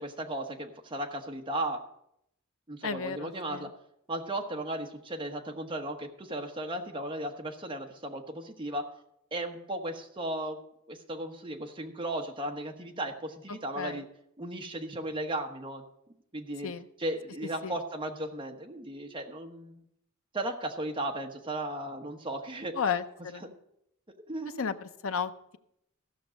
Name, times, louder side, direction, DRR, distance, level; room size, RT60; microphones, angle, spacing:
voice 1, 0.0-1.9 2.7-3.7 4.1-8.9 9.3-10.6 10.9-14.0 14.4-15.8 16.3-16.7 17.0-19.8 20.3-22.7 23.4-23.5 24.3-24.7, right 1 dB, 25° right, 3 dB, 1.1 m, -36 dB
voice 2, 2.8-3.7 13.8-14.0 16.6-16.8 17.6-17.7 22.7-23.5 24.6-24.7 25.0-25.6, left 6 dB, 65° left, 10 dB, 0.7 m, -33 dB
14.5 x 6.1 x 6.4 m, 0.78 s
head